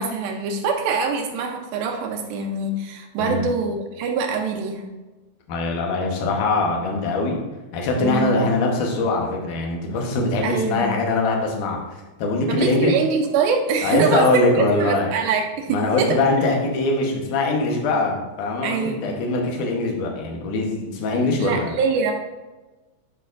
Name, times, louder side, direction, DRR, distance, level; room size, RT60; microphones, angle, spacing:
voice 1, 0.0-4.8 8.0-8.4 10.4-10.9 12.5-14.3 14.6-16.1 18.6-19.2 21.4-22.1, right 5 dB, 80° right, 3 dB, 2.3 m, -24 dB
voice 2, 5.5-7.4 7.7-13.0 13.8-15.1 15.7-21.7, left 2 dB, 65° left, 1 dB, 2.2 m, -22 dB
10.5 x 4.9 x 2.5 m, 1.2 s
omnidirectional pair, 4.5 m